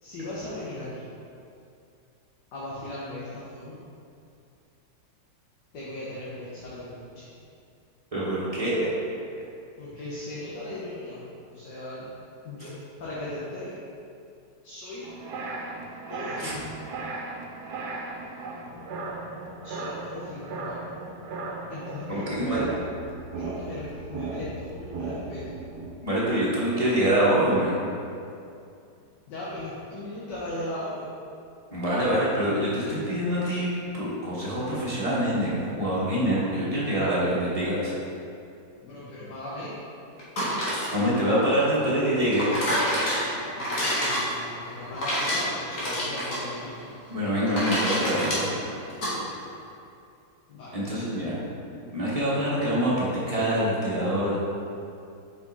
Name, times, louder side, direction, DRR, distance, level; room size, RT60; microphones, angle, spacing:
voice 1, 0.0-1.1 2.5-3.8 5.7-7.3 9.8-11.2 11.5-12.1 12.5-13.8 14.6-15.0 16.1-16.7 19.6-20.8 21.7-22.8 23.4-25.5 29.3-31.1 38.8-39.7 43.8-46.7 49.1-49.4 50.5-50.8, left 1 dB, 90° left, -8 dB, 1.7 m, -37 dB
voice 2, 8.1-8.9 16.4-16.5 22.1-22.6 26.0-27.8 31.7-37.9 40.6-42.5 47.1-48.6 50.7-51.3 51.9-54.4, equal, 25° right, -8 dB, 1.1 m, -25 dB
sound 1, 15.0-25.9, right 3 dB, 75° right, 1.3 m, -36 dB
sound 2, 40.2-49.1, equal, 70° left, 2.0 m, -29 dB
5.3 x 5.1 x 4.0 m, 2.5 s
omnidirectional pair, 1.8 m